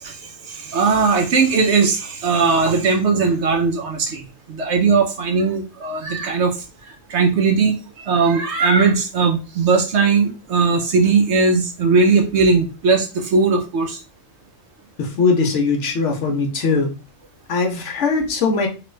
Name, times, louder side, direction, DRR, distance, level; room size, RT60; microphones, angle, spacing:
voice 1, 0.0-6.6 6.9-14.0, right 4 dB, 65° right, 2 dB, 0.8 m, -18 dB
voice 2, 15.0-16.9 17.5-18.7, left 4 dB, 65° left, 2 dB, 1.0 m, -20 dB
3.1 x 2.4 x 3.1 m, 0.32 s
omnidirectional pair, 1.4 m